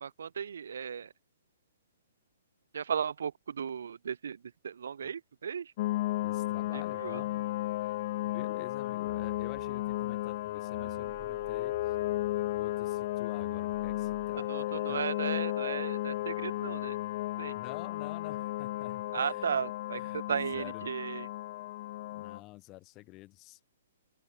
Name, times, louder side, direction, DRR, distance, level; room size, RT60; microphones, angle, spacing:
voice 1, 0.0-1.1 2.7-4.4 4.6-5.7 6.7-7.2 14.5-17.0 17.4-17.5 19.1-21.3, right 7 dB, 75° right, 1.1 m, -35 dB
sound 1, 5.8-22.4, left 16 dB, 40° left, 1.9 m, -34 dB
voice 2, 6.2-7.5 7.8-8.0 8.2-12.0 12.5-15.1 17.5-19.6 19.9-20.9 22.1-23.6, left 20 dB, 20° left, 4.9 m, -49 dB
sound 2, 9.1-14.4, right 18 dB, 35° right, 3.3 m, -54 dB
open air
hypercardioid pair, 165°, 0 cm